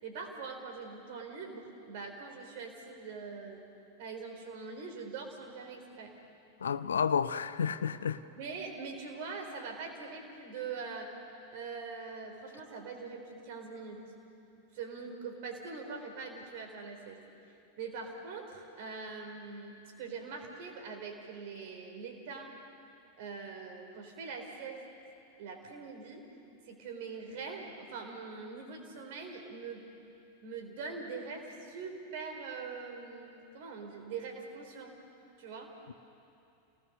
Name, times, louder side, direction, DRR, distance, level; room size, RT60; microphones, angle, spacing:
voice 1, 0.0-3.6 4.0-6.2 7.8-7.9 8.4-11.1 11.5-14.1 14.7-17.2 17.8-22.5 23.2-24.9 25.4-26.2 26.6-29.9 30.4-34.9 35.4-35.7, right 4 dB, 50° right, 3 dB, 4.2 m, -43 dB
voice 2, 6.6-8.2, left 7 dB, 70° left, 14 dB, 0.7 m, -30 dB
29.5 x 19.5 x 6.7 m, 2.7 s
figure-of-eight pair, 90°, 0 cm